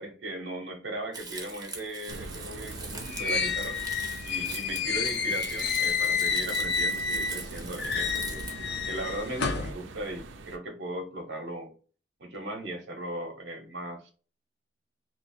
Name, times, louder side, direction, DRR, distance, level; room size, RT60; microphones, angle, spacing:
voice 1, 0.0-3.8 4.2-8.4 8.9-11.7 12.2-14.1, right 1 dB, 65° right, 0.8 m, -37 dB
Crumpling crinkling, 1.1-8.5, right 3 dB, 20° right, 0.8 m, -42 dB
sound 1, 2.1-10.6, right 3 dB, 90° right, 0.5 m, -43 dB
sound 2, 2.7-7.5 7.8-9.7, left 5 dB, 60° left, 0.5 m, -30 dB
3.0 x 2.0 x 4.1 m
head